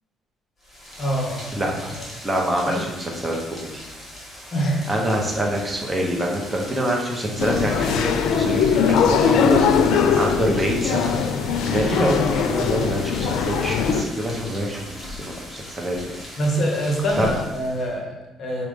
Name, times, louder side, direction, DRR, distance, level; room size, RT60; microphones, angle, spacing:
Rain, 0.6-18.0, equal, 20° left, 2.2 m, -39 dB
voice 1, 1.0-1.7 2.7-2.9 4.5-4.8 16.4-18.7, right 1 dB, 40° left, -1 dB, 1.8 m, -25 dB
voice 2, 1.6-1.9 2.2-2.9 3.2-3.8 4.9-9.7 10.1-11.1 11.6-16.0 16.3-16.4 17.2-17.3, equal, 15° right, -1 dB, 1.0 m, -25 dB
sound 1, 7.4-14.0, left 6 dB, 80° left, 0.5 m, -21 dB
5.2 x 5.0 x 5.3 m, 1.0 s
cardioid pair, 150°, 0 cm